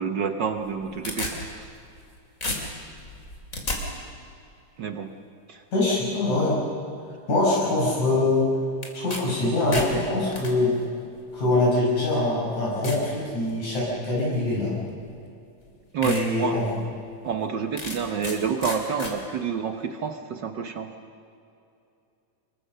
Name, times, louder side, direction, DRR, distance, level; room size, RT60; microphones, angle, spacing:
voice 1, 0.0-1.7 4.8-5.1 5.5-5.6 15.9-17.0 17.2-20.9, right 6 dB, 70° right, 7 dB, 1.0 m, -29 dB
sound 1, 0.6-2.1 2.4-3.8 8.8-9.2 9.5-10.5 11.4-11.5 12.1-12.2 12.8-13.1 13.6-13.9 15.1-15.2 15.6-15.7 16.0-16.2 16.7-16.8 17.8-18.4 18.6-19.1, left 2 dB, 25° left, 3.3 m, -32 dB
voice 2, 5.7-6.6 7.3-8.5 8.9-10.7 11.3-14.7 16.0-16.7, left 2 dB, 70° left, -6 dB, 6.8 m, -23 dB
26.5 x 22.0 x 6.7 m, 2.6 s
omnidirectional pair, 3.4 m